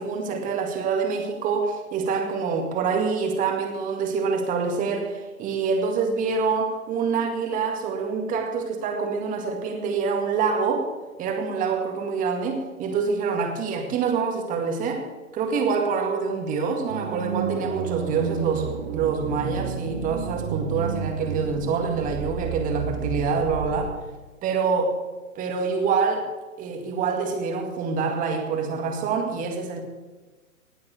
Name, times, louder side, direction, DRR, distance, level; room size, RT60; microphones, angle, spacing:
voice 1, 0.0-10.9 11.2-15.1 15.3-23.9 24.4-25.0 25.4-26.3 26.6-29.8, right 5 dB, 20° right, 4 dB, 2.0 m, -26 dB
sound 1, 16.9-23.9, right 7 dB, 35° right, 2.0 m, -31 dB
19.0 x 7.5 x 6.4 m, 1.3 s
figure-of-eight pair, 130°, 43 cm